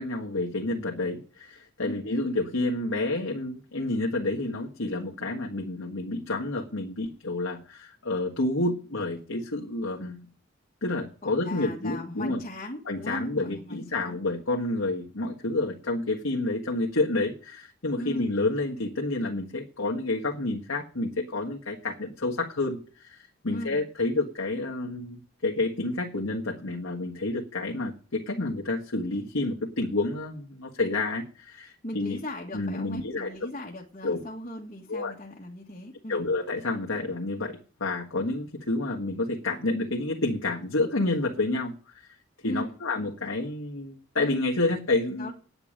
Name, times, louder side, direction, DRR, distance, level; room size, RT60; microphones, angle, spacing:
voice 1, 0.0-10.3 10.8-12.4 12.9-32.2 32.5-33.3 34.0-34.2 34.9-35.1 36.1-42.1 42.4-45.3, left 2 dB, 85° left, -1 dB, 1.7 m, -29 dB
voice 2, 11.2-14.2 17.9-18.3 23.5-23.8 31.8-36.2 42.4-42.7 45.2-45.3, left 1 dB, 35° left, -3 dB, 1.7 m, -38 dB
9.7 x 7.0 x 8.8 m, 0.37 s
head